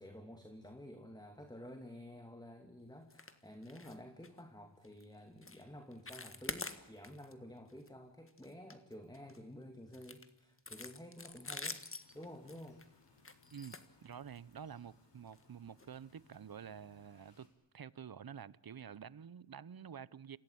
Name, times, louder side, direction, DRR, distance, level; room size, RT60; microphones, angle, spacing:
voice 1, 0.0-11.8 12.1-12.8, left 1 dB, 10° left, 2.6 m, -51 dB
sound 1, 3.1-3.4 3.6-4.0 4.2-4.4 4.8-5.0 5.4-5.6 5.9-7.3 7.7-7.9 8.3-9.4 9.9-14.5 15.3-15.4 15.8-15.9 16.3-16.4, left 3 dB, 30° left, 1.7 m, -47 dB
sound 2, 12.0-17.5, left 4 dB, 70° left, 5.1 m, -68 dB
voice 2, 13.5-17.5 17.7-20.4, right 8 dB, 55° right, 0.8 m, -49 dB
27.5 x 16.0 x 8.7 m
wide cardioid pair, 65°, 43 cm